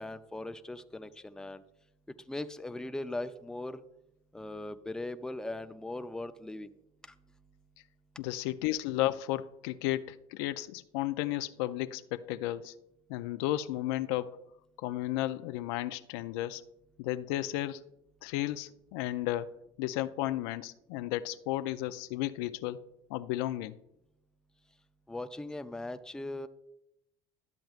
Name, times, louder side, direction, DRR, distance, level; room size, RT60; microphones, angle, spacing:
voice 1, 0.0-1.6 2.3-3.8 4.3-6.7 25.1-26.5, left 2 dB, 5° left, 0.5 m, -39 dB
voice 2, 8.2-12.8 13.1-14.4 14.8-16.6 17.0-17.8 18.2-19.5 19.8-23.8, left 15 dB, 80° left, 0.4 m, -33 dB
12.0 x 7.7 x 2.4 m
supercardioid pair, 95°, 13 cm